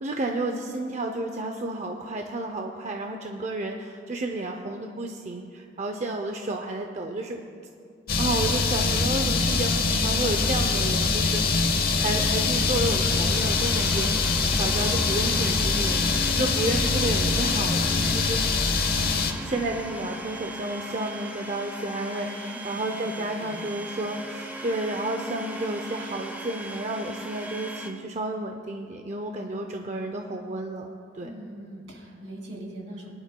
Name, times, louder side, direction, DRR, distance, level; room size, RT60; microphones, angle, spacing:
voice 1, 0.0-7.4 8.2-11.4 11.9-14.1 14.6-16.1 16.4-18.4 19.4-30.9 31.1-31.3, right 2 dB, 35° right, 3 dB, 0.5 m, -31 dB
sound 1, 8.1-19.3, left 4 dB, 55° left, 0.9 m, -24 dB
Domestic sounds home sounds, 12.0-27.9, right 1 dB, 10° right, 0.8 m, -38 dB
voice 2, 22.5-23.6 31.2-33.1, right 1 dB, 70° right, -2 dB, 3.0 m, -42 dB
22.5 x 11.0 x 2.2 m, 2.4 s
head